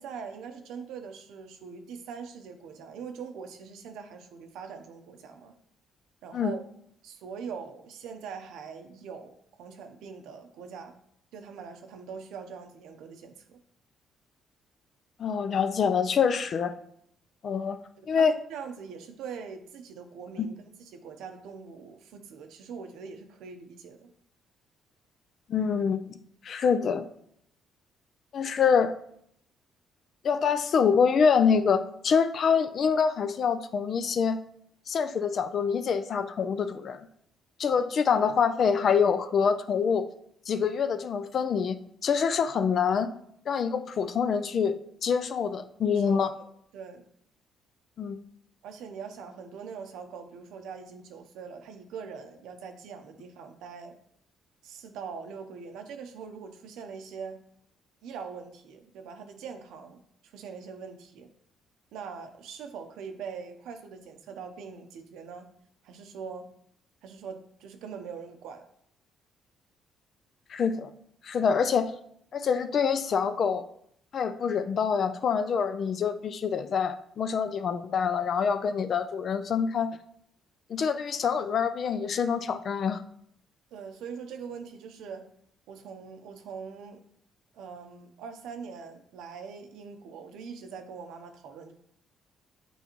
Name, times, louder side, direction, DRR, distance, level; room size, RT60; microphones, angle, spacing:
voice 1, 0.0-5.5 6.2-6.6 7.0-11.0 11.3-13.6 18.1-24.1 45.9-46.2 46.7-47.0 48.6-54.0 54.6-57.4 58.0-61.3 61.9-65.5 65.8-66.5 67.0-68.6 83.7-85.3 85.7-87.0 87.5-91.7, right 6 dB, 85° right, 6 dB, 0.7 m, -42 dB
voice 2, 15.2-16.7 17.4-17.8 18.1-18.4 20.4-20.5 25.5-26.0 26.4-27.0 28.3-28.9 30.2-34.4 34.9-37.0 37.6-40.0 40.5-43.1 43.5-44.7 45.0-46.3 48.0-48.2 70.5-70.9 71.2-71.9 72.3-73.6 74.1-80.0 80.7-83.0, left 6 dB, 50° left, 10 dB, 0.4 m, -25 dB
8.1 x 4.0 x 3.0 m, 0.70 s
cardioid pair, 125°, 0 cm